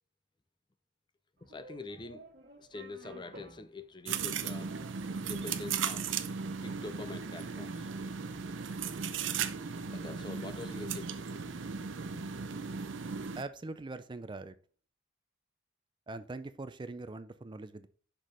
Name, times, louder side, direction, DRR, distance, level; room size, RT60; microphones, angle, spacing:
voice 1, 1.4-2.2 2.6-4.8 5.3-6.1 6.6-7.9 9.9-11.1 12.1-12.2, left 3 dB, 25° left, 0.5 m, -45 dB
sound 1, 1.4-14.1, right 2 dB, 55° right, 1.6 m, -58 dB
sound 2, 4.0-13.4, right 6 dB, 75° right, 0.6 m, -36 dB
voice 2, 13.3-14.6 16.1-17.9, right 3 dB, 25° right, 0.4 m, -42 dB
5.9 x 5.1 x 5.5 m
head